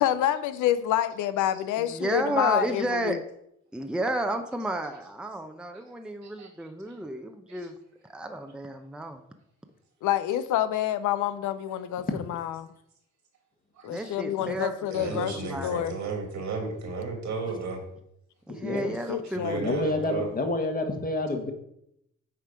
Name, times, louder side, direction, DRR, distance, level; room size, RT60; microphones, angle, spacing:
voice 1, 0.0-3.2 10.0-12.7 13.8-15.3 15.6-16.0 18.8-19.6, left 11 dB, 85° left, 12 dB, 0.6 m, -27 dB
voice 2, 1.8-3.2 3.7-7.7 8.0-9.2 13.9-15.7 18.5-19.8, right 1 dB, 5° right, 5 dB, 0.7 m, -32 dB
voice 3, 14.9-17.8 19.3-20.3, right 4 dB, 70° right, 3 dB, 2.3 m, -34 dB
voice 4, 18.5-18.9 19.6-21.5, left 2 dB, 30° left, 4 dB, 1.5 m, -29 dB
8.3 x 4.4 x 5.0 m, 0.75 s
cardioid pair, 90°, 30 cm